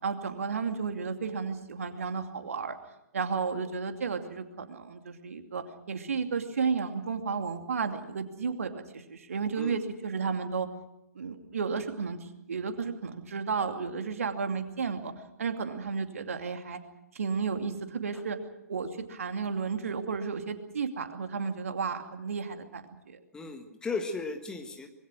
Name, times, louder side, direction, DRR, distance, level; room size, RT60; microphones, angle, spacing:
voice 1, 0.0-2.8 3.1-10.7 11.1-15.1 15.4-16.8 17.1-18.4 18.7-23.2, right 5 dB, 55° right, 6 dB, 2.6 m, -33 dB
voice 2, 23.3-24.9, left 3 dB, 10° left, 4 dB, 1.6 m, -36 dB
25.5 x 21.5 x 6.3 m, 0.86 s
figure-of-eight pair, 125°, 9 cm